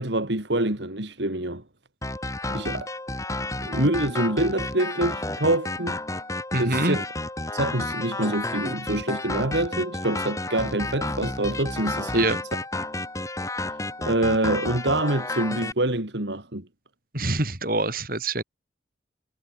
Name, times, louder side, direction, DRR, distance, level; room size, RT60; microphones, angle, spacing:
voice 1, 0.0-1.6 2.5-2.9 3.6-6.0 6.6-7.0 7.5-12.4 14.0-16.7, right 1 dB, 75° right, 3.5 m, -26 dB
sound 1, 2.0-15.7, left 2 dB, 15° left, 4.5 m, -31 dB
voice 2, 6.5-7.0 12.1-12.4 17.1-18.4, right 2 dB, 50° right, 7.7 m, -25 dB
head